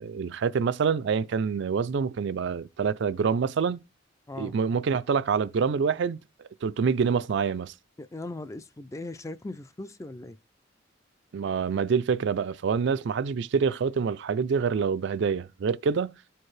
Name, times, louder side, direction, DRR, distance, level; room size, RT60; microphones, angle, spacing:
voice 1, 0.0-3.8 4.3-6.2 6.6-7.7 11.3-16.2, right 6 dB, 60° right, 0.4 m, -26 dB
voice 2, 8.0-10.4, left 2 dB, 15° left, 0.3 m, -39 dB
12.5 x 4.5 x 3.2 m
head